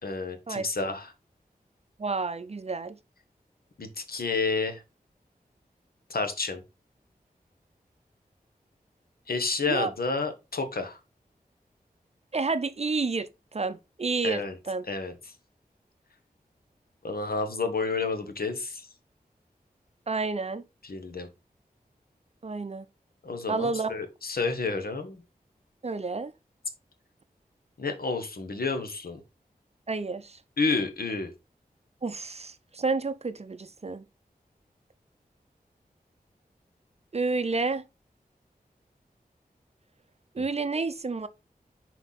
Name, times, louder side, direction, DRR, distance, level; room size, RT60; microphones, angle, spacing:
voice 1, 0.0-1.1 3.8-4.8 6.1-6.6 9.3-11.0 14.2-14.5 14.8-15.3 17.0-18.9 20.8-21.3 23.2-25.2 27.8-29.2 30.6-31.3 40.4-40.5, left 4 dB, 75° left, 1.2 m, -30 dB
voice 2, 2.0-3.0 9.7-9.9 12.3-14.8 20.1-20.6 22.4-22.8 23.5-23.9 25.8-26.3 29.9-30.4 32.0-34.0 37.1-37.8 40.3-41.3, right 3 dB, 40° right, 0.6 m, -30 dB
5.7 x 4.6 x 4.0 m
wide cardioid pair, 70°, 16 cm